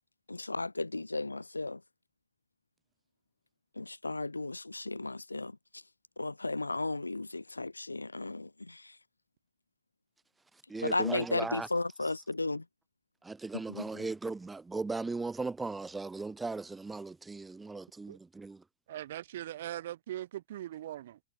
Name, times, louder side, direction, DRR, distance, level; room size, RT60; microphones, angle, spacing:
voice 1, 0.3-1.8 3.8-5.5 6.2-8.8 10.8-12.6 13.7-13.8, left 2 dB, 80° left, 0.4 m, -34 dB
voice 2, 10.7-11.7 12.0-12.1 13.2-18.6, right 3 dB, 10° right, 0.7 m, -37 dB
voice 3, 18.9-21.2, right 13 dB, 60° right, 3.6 m, -40 dB
figure-of-eight pair, 90°, 0 cm